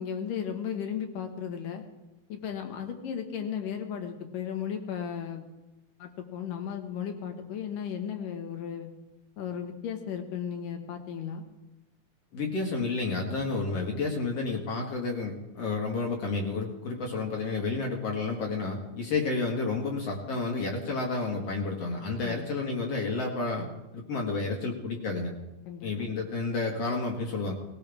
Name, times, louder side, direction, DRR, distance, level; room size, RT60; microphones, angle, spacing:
voice 1, 0.0-1.8 2.3-5.4 6.0-8.9 9.4-11.4 22.2-22.5 25.7-26.1, left 8 dB, 80° left, 5 dB, 3.1 m, -35 dB
voice 2, 12.3-23.7 23.9-25.3 25.8-27.5, left 3 dB, 55° left, 1 dB, 2.4 m, -30 dB
19.0 x 19.0 x 3.5 m, 0.98 s
omnidirectional pair, 3.8 m